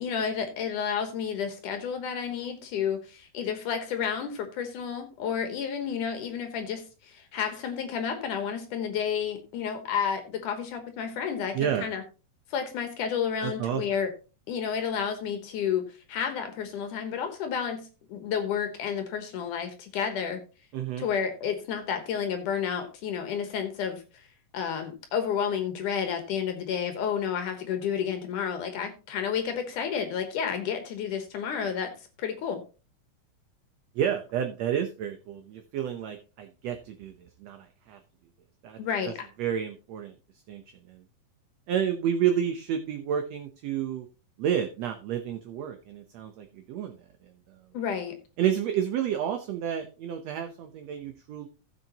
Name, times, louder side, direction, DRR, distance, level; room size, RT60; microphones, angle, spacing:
voice 1, 0.0-12.0 12.5-14.1 14.5-20.4 21.0-24.3 24.5-31.9 32.2-32.6 38.8-39.1 47.7-48.2, left 7 dB, 75° left, 7 dB, 2.6 m, -31 dB
voice 2, 11.5-11.9 13.4-13.8 20.7-21.1 33.9-38.0 38.6-38.8 39.0-39.1 39.4-40.1 40.5-41.0 41.7-44.1 44.4-47.6 48.4-51.5, right 9 dB, 70° right, 6 dB, 1.7 m, -30 dB
15.0 x 7.5 x 2.9 m, 0.33 s
omnidirectional pair, 3.8 m